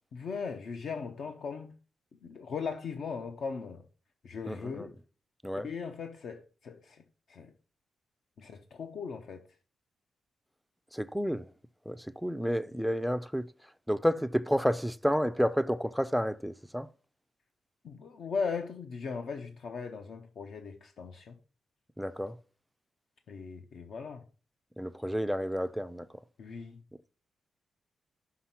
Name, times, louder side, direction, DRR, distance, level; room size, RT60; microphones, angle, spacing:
voice 1, 0.1-1.7 2.2-3.9 4.2-5.0 5.5-7.5 8.4-9.4 17.8-21.4 23.3-24.2 26.4-26.8, left 5 dB, 60° left, 0.7 m, -38 dB
voice 2, 4.5-4.9 5.4-5.7 10.9-11.5 11.9-13.5 13.9-16.9 22.0-22.4 24.8-26.1, equal, ahead, 0.3 m, -30 dB
5.7 x 5.6 x 5.8 m
wide cardioid pair, 155°, 0 cm